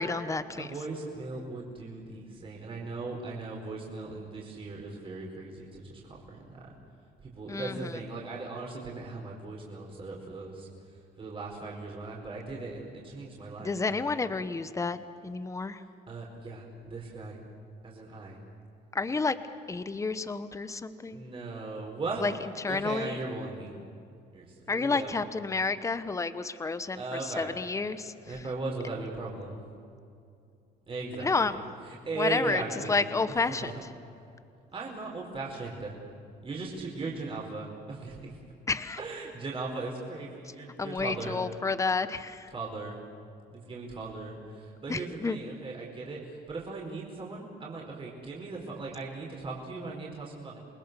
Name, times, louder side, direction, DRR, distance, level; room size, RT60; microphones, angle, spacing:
voice 1, 0.0-0.7 7.5-8.0 13.6-15.8 18.9-19.4 19.7-21.2 22.2-22.3 22.6-23.2 24.7-27.0 27.4-28.1 31.2-31.6 32.1-32.6 32.9-33.8 38.7-39.0 40.8-42.5 44.9-45.4, left 4 dB, 20° left, 12 dB, 1.0 m, -30 dB
voice 2, 0.6-6.7 7.2-10.7 11.2-14.1 16.1-17.4 17.8-18.4 21.1-22.2 22.7-23.7 24.3-25.1 26.9-27.5 28.2-29.6 30.9-33.1 33.5-33.7 34.7-35.9 36.4-38.3 39.0-41.4 42.5-43.0 43.5-50.6, right 3 dB, 30° right, -2 dB, 4.8 m, -38 dB
28.0 x 20.5 x 7.0 m, 2.5 s
cardioid pair, 110°, 17 cm